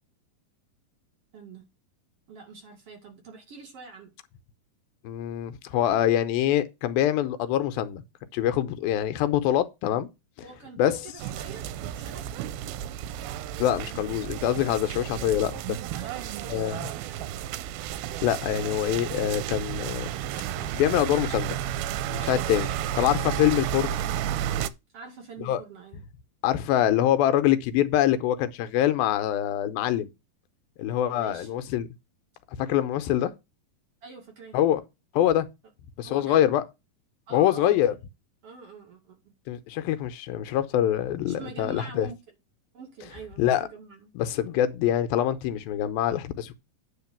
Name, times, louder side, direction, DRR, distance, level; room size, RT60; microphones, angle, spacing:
voice 1, 1.3-1.6 2.3-4.1 10.4-12.2 15.9-17.2 22.1-22.9 24.9-26.0 31.1-31.5 34.0-34.6 36.0-36.4 37.3-38.0 38.4-39.3 41.3-42.2 42.7-44.1, right 4 dB, 45° right, 2.6 m, -45 dB
voice 2, 5.0-8.0 8.3-10.1 10.8-11.1 13.6-15.8 16.5-16.9 18.2-20.1 20.7-21.6 22.1-22.7 23.0-24.0 25.5-25.6 26.4-30.1 30.8-31.9 32.6-33.3 34.5-34.8 35.1-35.5 36.0-36.6 37.3-37.9 39.5-42.1 43.4-43.7 44.2-46.6, left 11 dB, 80° left, 2.4 m, -24 dB
sound 1, 11.2-24.7, right 11 dB, 90° right, 2.6 m, -32 dB
9.6 x 3.8 x 7.2 m
omnidirectional pair, 4.3 m